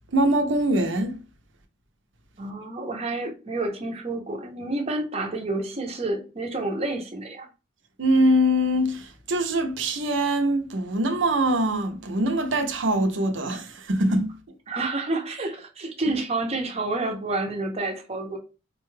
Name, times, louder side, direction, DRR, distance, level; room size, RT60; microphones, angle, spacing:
voice 1, 0.1-1.1 8.0-14.3, right 1 dB, 70° right, 0.7 m, -23 dB
voice 2, 2.4-7.5 14.7-18.4, right 2 dB, 30° right, 0.7 m, -29 dB
4.1 x 2.2 x 3.1 m
head